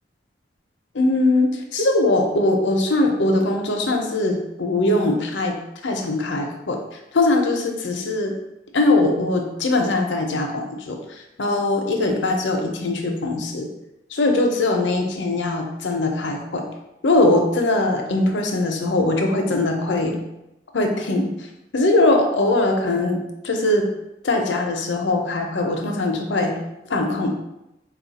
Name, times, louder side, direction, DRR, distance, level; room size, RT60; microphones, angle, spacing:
voice 1, 0.9-8.3 8.7-13.7 14.1-16.7 17.0-20.2 20.7-21.3 21.7-23.9 24.2-26.6 26.9-27.3, left 2 dB, 80° left, 2 dB, 0.6 m, -21 dB
4.2 x 2.4 x 4.0 m, 0.89 s
head